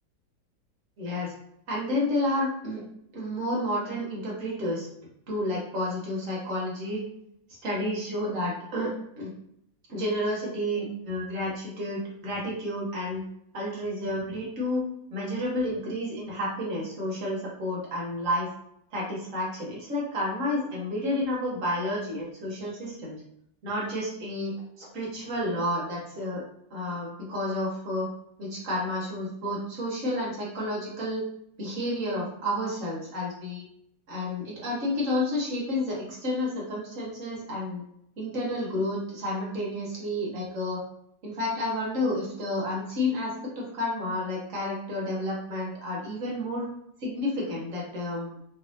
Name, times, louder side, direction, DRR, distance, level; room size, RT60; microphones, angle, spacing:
voice 1, 1.0-1.3 1.7-2.8 3.1-4.9 5.3-7.0 7.5-9.3 9.9-13.2 13.5-14.8 15.1-18.5 18.9-23.2 23.6-26.4 26.7-28.1 28.4-31.3 31.6-33.6 34.1-37.8 38.2-40.8 41.2-46.6 47.0-48.4, left 1 dB, 50° right, -4 dB, 1.1 m, -30 dB
3.1 x 3.1 x 2.6 m, 0.73 s
omnidirectional pair, 2.0 m